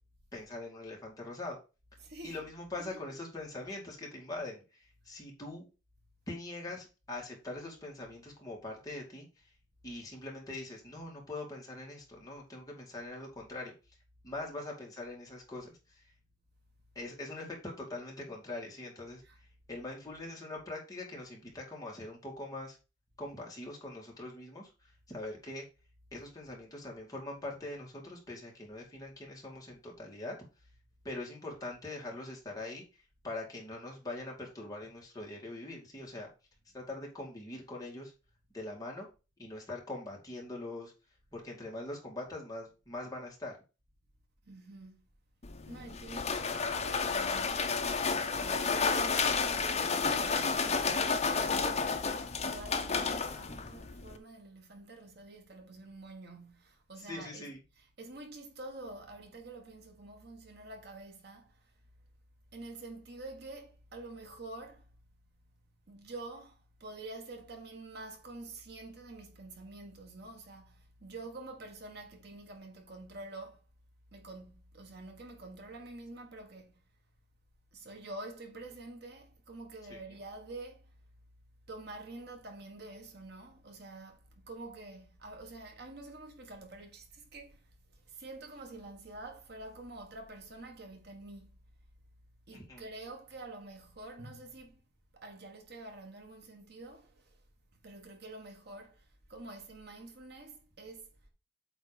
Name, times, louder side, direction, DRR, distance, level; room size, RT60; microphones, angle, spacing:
voice 1, 0.3-1.6 2.2-5.7 6.3-9.3 9.8-13.7 14.2-16.0 17.0-19.2 19.7-22.8 23.2-25.6 26.1-30.4 31.0-32.8 33.2-36.3 36.7-38.1 38.5-39.1 39.4-40.9 41.3-43.5 51.8-51.9 57.1-57.6 79.9-80.0 92.5-92.9, left 2 dB, 20° left, 2.4 m, -42 dB
voice 2, 2.0-2.5 2.8-3.2 19.2-19.4 44.4-45.1 45.7-61.8 62.5-64.9 65.9-73.6 74.1-76.8 77.7-81.0 81.7-91.6 92.5-94.8 95.1-97.4 97.7-101.3, right 2 dB, 55° right, 1.4 m, -48 dB
sound 1, 45.4-54.2, left 5 dB, 35° left, 0.8 m, -31 dB
8.2 x 3.6 x 4.9 m
head